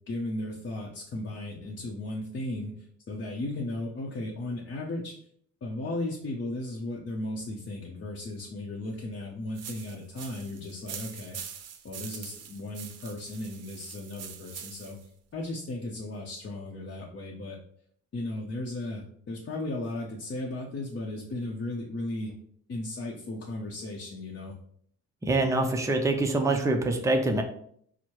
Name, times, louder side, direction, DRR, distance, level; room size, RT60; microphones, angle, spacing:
voice 1, 0.1-5.2 5.6-15.0 15.3-17.6 18.1-22.3 22.7-24.5, left 2 dB, 40° left, -2 dB, 0.7 m, -36 dB
sound 1, 9.5-15.1, right 8 dB, 55° right, 0.6 m, -43 dB
voice 2, 25.2-27.4, right 2 dB, 10° right, 3 dB, 0.6 m, -25 dB
4.6 x 2.1 x 4.4 m, 0.65 s
cardioid pair, 90°, 30 cm